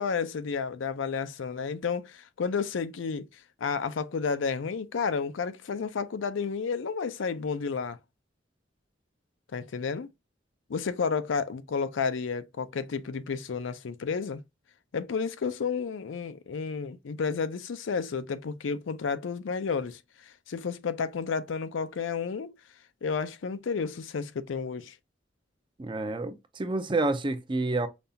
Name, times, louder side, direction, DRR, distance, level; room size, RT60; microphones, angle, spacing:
voice 1, 0.0-3.3 3.6-8.0 9.5-10.1 10.7-14.4 14.9-22.5 23.0-24.9, left 5 dB, 80° left, 0.5 m, -31 dB
voice 2, 25.8-27.9, right 2 dB, 25° right, 0.5 m, -29 dB
5.2 x 2.3 x 2.6 m
head